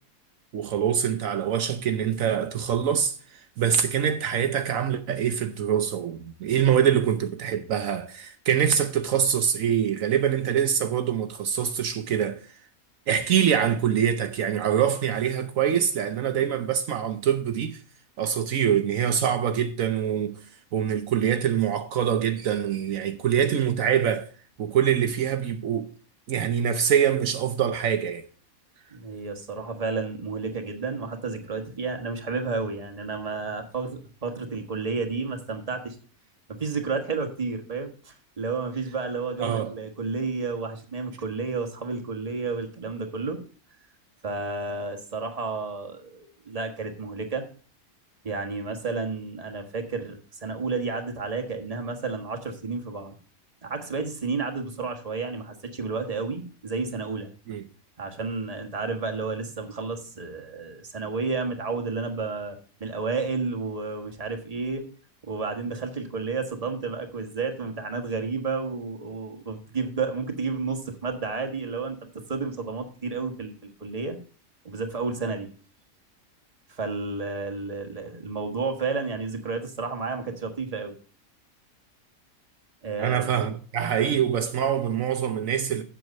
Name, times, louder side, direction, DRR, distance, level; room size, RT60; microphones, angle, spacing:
voice 1, 0.5-12.4 13.1-17.8 18.2-20.4 20.7-24.3 24.6-25.9 26.3-28.3 39.4-39.7 57.5-57.6 83.0-85.8, right 8 dB, 75° right, 1.2 m, -24 dB
voice 2, 28.9-35.9 36.5-43.4 44.2-47.4 48.2-53.1 53.6-57.3 58.0-64.8 65.2-72.0 72.3-74.2 74.6-75.5 76.7-80.9 82.8-83.4 84.1-84.2, right 4 dB, 25° right, 1.5 m, -31 dB
7.8 x 7.4 x 5.3 m
omnidirectional pair, 1.5 m